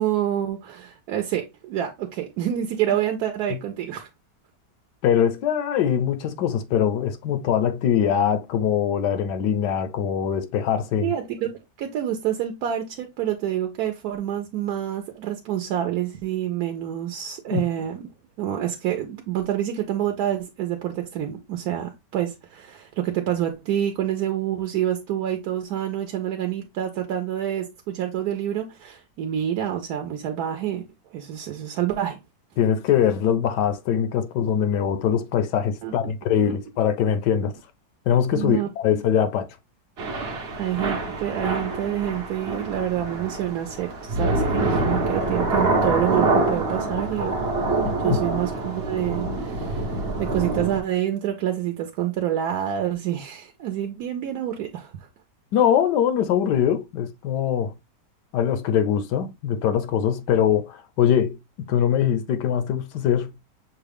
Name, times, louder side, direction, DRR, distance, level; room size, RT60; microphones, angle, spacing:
voice 1, 0.0-4.1 11.0-18.0 18.4-30.8 31.1-32.2 35.8-36.1 36.4-36.6 38.3-38.7 40.6-47.4 48.0-55.1, right 11 dB, 70° right, 1.1 m, -27 dB
voice 2, 5.0-11.1 17.5-17.6 32.6-37.5 38.1-39.5 47.8-48.2 55.5-57.7 58.3-63.3, left 9 dB, 75° left, 1.2 m, -22 dB
Thunder / Rain, 40.0-50.8, right 2 dB, 45° right, 0.8 m, -26 dB
6.4 x 2.3 x 3.3 m
omnidirectional pair, 1.9 m